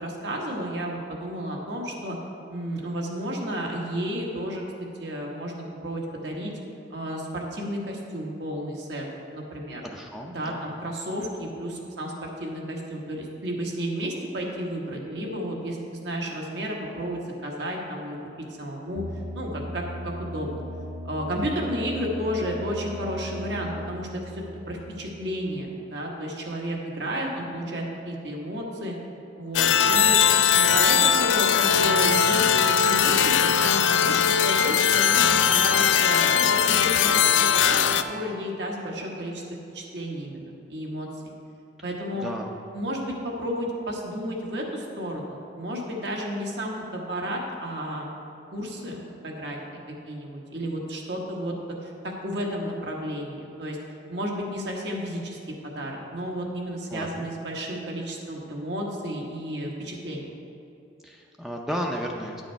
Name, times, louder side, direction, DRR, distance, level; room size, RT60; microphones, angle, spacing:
voice 1, 0.0-2.2 2.5-4.6 5.0-6.5 6.9-9.0 9.3-9.8 10.3-15.8 16.0-18.2 18.6-19.0 19.3-20.6 21.0-28.9 29.4-30.2 30.5-37.2 37.5-39.4 39.7-41.1 41.8-42.3 42.7-48.1 48.5-51.5 51.8-53.8 54.1-60.3, equal, 70° right, -1 dB, 1.3 m, -32 dB
voice 2, 9.8-10.6 29.8-30.4 41.8-42.5 56.9-57.3 61.0-62.4, equal, ahead, 0 dB, 0.4 m, -34 dB
sound 1, 19.0-25.6, equal, 50° right, 1.6 m, -37 dB
sound 2, 29.5-38.0, left 8 dB, 90° left, 0.4 m, -20 dB
10.5 x 6.3 x 4.5 m, 2.8 s
head